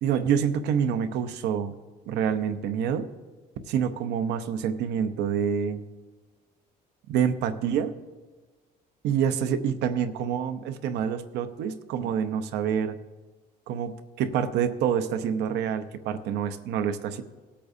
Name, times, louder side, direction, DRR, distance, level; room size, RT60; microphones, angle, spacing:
voice 1, 0.0-1.7 2.1-3.1 3.7-5.8 7.1-7.9 9.0-13.0 13.7-17.2, right 8 dB, 85° right, 11 dB, 0.8 m, -27 dB
18.0 x 8.6 x 2.7 m, 1.3 s
cardioid pair, 110°, 17 cm